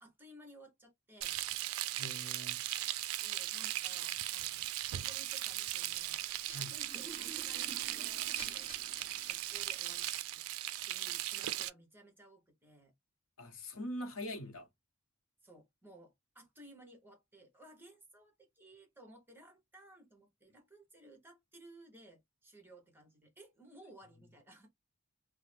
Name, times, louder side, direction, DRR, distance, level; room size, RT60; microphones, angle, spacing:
voice 1, 0.0-1.4 3.2-6.2 6.6-8.7 9.0-10.4 10.9-12.9 15.4-24.7, right 1 dB, 10° right, 0.9 m, -58 dB
Frying (food), 1.2-11.7, right 14 dB, 80° right, 0.3 m, -38 dB
voice 2, 2.0-2.6 6.5-6.7 13.4-14.7, left 1 dB, 70° left, 0.7 m, -43 dB
sound 1, 6.2-10.1, right 1 dB, 30° left, 1.1 m, -52 dB
2.5 x 2.0 x 3.1 m
head